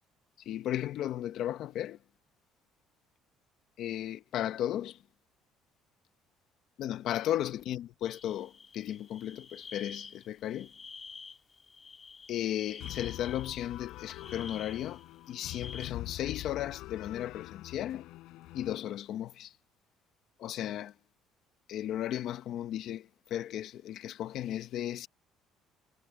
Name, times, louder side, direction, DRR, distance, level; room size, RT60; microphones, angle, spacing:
voice 1, 0.4-2.0 3.8-5.0 6.8-10.7 12.3-18.1 18.5-19.5 20.4-20.9 21.7-25.1, left 12 dB, 55° left, 0.9 m, -35 dB
sound 1, 8.0-15.9, left 5 dB, 20° left, 2.0 m, -49 dB
sound 2, 12.8-18.8, left 17 dB, 75° left, 4.1 m, -44 dB
cardioid pair, 155°, 0 cm